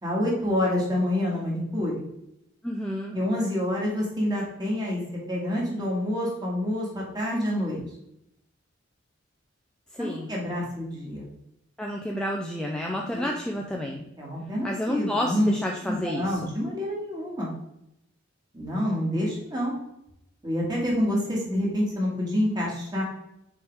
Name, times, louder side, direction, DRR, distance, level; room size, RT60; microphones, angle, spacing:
voice 1, 0.0-2.0 3.1-5.0 5.3-7.8 10.0-11.3 13.1-13.3 14.2-15.5 15.8-17.5 18.5-19.8 20.4-23.0, left 1 dB, 20° right, -4 dB, 2.0 m, -27 dB
voice 2, 2.6-3.2 9.9-10.3 11.8-14.1 14.6-16.5, left 1 dB, 5° left, -1 dB, 0.5 m, -30 dB
6.3 x 4.6 x 3.5 m, 0.81 s
head